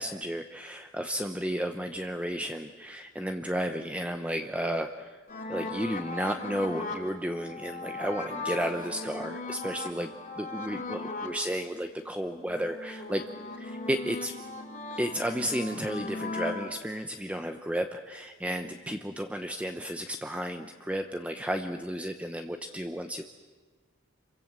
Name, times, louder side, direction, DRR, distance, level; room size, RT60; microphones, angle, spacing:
voice 1, 0.0-5.2 5.5-13.2 13.6-14.3 15.0-23.2, equal, 5° right, 6 dB, 0.8 m, -33 dB
sound 1, 5.3-11.4 11.9-16.7, left 3 dB, 40° left, 3.1 m, -38 dB
27.0 x 24.0 x 7.4 m, 1.4 s
head